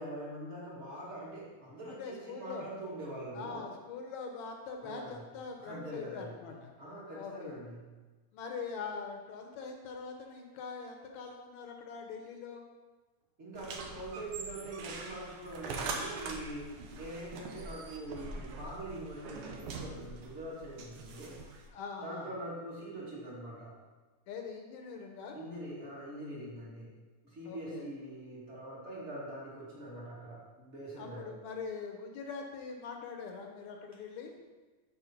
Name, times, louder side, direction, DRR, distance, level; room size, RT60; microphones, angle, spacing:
voice 1, 0.0-3.6 4.8-5.2 5.6-6.4 6.8-7.9 13.4-21.4 22.0-23.7 25.3-27.0 27.2-31.3, right 1 dB, 30° right, -6 dB, 1.5 m, -43 dB
voice 2, 1.9-2.7 3.3-6.7 7.1-7.6 8.3-12.6 21.7-22.3 24.3-25.4 27.5-27.9 31.0-34.3, left 5 dB, 70° left, 2 dB, 2.0 m, -43 dB
sound 1, 13.5-21.7, right 3 dB, 80° right, 1.3 m, -43 dB
7.0 x 4.4 x 5.7 m, 1.3 s
omnidirectional pair, 3.6 m